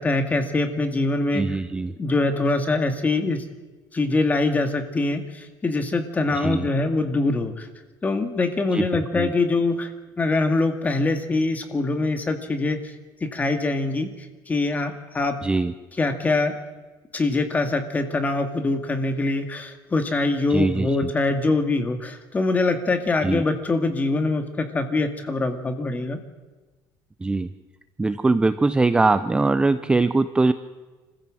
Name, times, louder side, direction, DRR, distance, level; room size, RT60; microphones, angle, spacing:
voice 1, 0.0-1.5 2.0-3.4 3.9-7.7 8.0-12.9 13.2-15.4 16.0-16.6 17.1-26.2, left 3 dB, 20° left, 7 dB, 2.1 m, -24 dB
voice 2, 1.3-1.9 6.3-6.7 8.7-8.9 9.1-9.3 15.4-15.7 20.5-21.1 23.2-23.4 27.2-27.5 28.0-30.5, right 3 dB, 10° right, 12 dB, 0.6 m, -22 dB
26.0 x 15.0 x 7.7 m, 1.3 s
cardioid pair, 145°, 8 cm